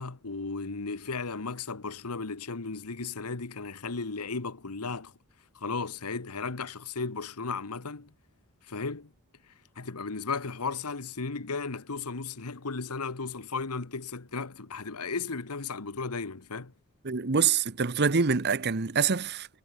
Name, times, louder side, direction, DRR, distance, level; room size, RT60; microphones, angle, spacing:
voice 1, 0.0-5.1 5.5-8.1 8.6-9.1 9.7-16.7, left 4 dB, 90° left, 1.3 m, -35 dB
voice 2, 17.0-19.5, right 5 dB, 50° right, 1.0 m, -25 dB
head